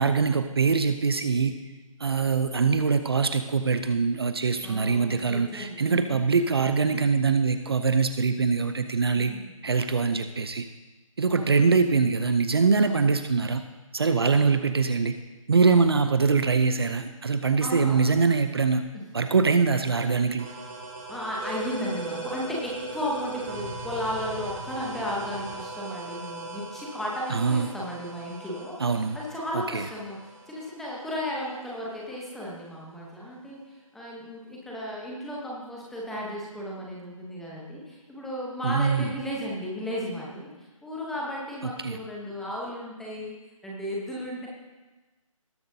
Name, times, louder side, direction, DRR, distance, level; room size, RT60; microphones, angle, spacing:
voice 1, 0.0-1.5 2.0-9.3 9.6-10.7 11.2-13.6 13.9-15.2 15.5-18.9 19.1-20.5 27.3-27.7 28.8-29.2 29.5-29.9 38.6-39.1 41.6-42.0, right 4 dB, 45° right, 9 dB, 0.6 m, -23 dB
voice 2, 4.6-6.3 9.1-9.5 11.3-11.7 12.8-13.0 17.6-18.0 18.9-19.1 21.1-30.2 30.5-33.6 33.9-40.5 40.8-44.5, equal, ahead, -4 dB, 0.8 m, -34 dB
sound 1, 20.4-31.8, right 3 dB, 20° right, 1.4 m, -39 dB
19.0 x 7.5 x 2.7 m, 1.2 s
figure-of-eight pair, 155°, 18 cm